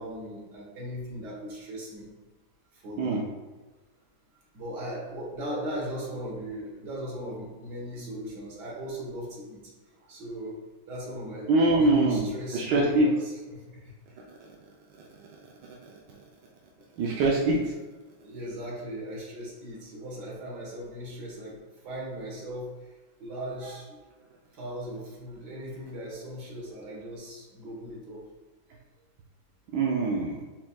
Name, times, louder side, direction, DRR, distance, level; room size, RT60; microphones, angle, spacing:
voice 1, 0.0-2.1 2.7-3.3 4.5-9.7 10.1-14.0 16.8-16.9 18.2-24.0 24.5-28.3, equal, 55° right, -4 dB, 1.7 m, -38 dB
voice 2, 11.5-13.1 17.0-17.7 29.7-30.4, right 2 dB, 70° right, -2 dB, 1.0 m, -23 dB
4.4 x 4.3 x 2.2 m, 1.2 s
omnidirectional pair, 2.2 m